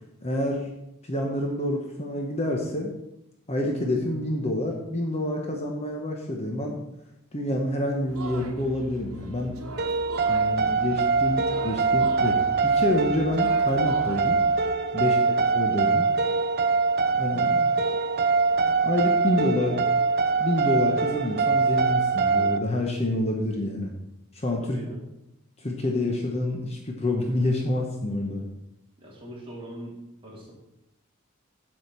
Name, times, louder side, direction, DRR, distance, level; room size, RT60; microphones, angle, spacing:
voice 1, 0.2-0.7 1.1-2.9 3.5-6.8 7.3-9.5 10.3-14.4 14.9-16.1 17.2-17.7 18.7-19.9 20.4-23.9 24.3-24.8 25.6-28.4, left 1 dB, 30° left, 1 dB, 1.0 m, -28 dB
sound 1, 8.1-14.8, right 1 dB, 70° right, 1.3 m, -41 dB
sound 2, 9.8-22.6, right 4 dB, 45° right, 0.5 m, -23 dB
voice 2, 24.6-25.1 29.0-29.9 30.2-30.5, right 1 dB, 25° right, -5 dB, 3.1 m, -41 dB
7.9 x 5.0 x 7.3 m, 0.87 s
head